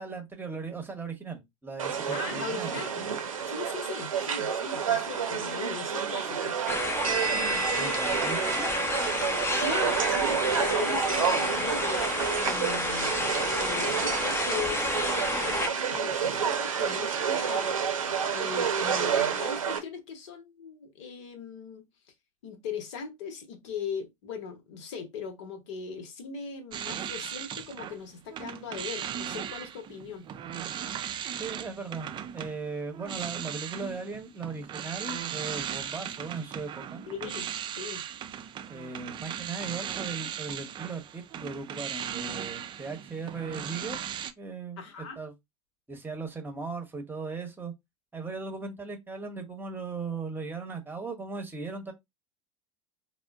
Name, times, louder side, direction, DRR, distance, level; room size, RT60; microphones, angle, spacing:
voice 1, 0.0-2.8 7.7-8.7 31.4-37.0 38.7-44.0 44.4-44.8 45.2-45.3 45.9-47.7 48.1-51.9, right 4 dB, 10° right, 0.9 m, -38 dB
sound 1, 1.8-19.8, right 7 dB, 80° right, 0.8 m, -29 dB
voice 2, 2.1-3.1 3.5-6.6 9.5-17.8 18.3-21.8 22.4-30.3 37.1-37.5 37.8-38.0 44.8-45.2, left 6 dB, 60° left, 0.9 m, -39 dB
sound 2, 6.7-15.7, left 2 dB, 15° left, 0.6 m, -30 dB
sound 3, 26.7-28.0 28.3-44.3, right 9 dB, 30° right, 0.5 m, -37 dB
4.3 x 2.1 x 2.3 m
figure-of-eight pair, 80°, 17 cm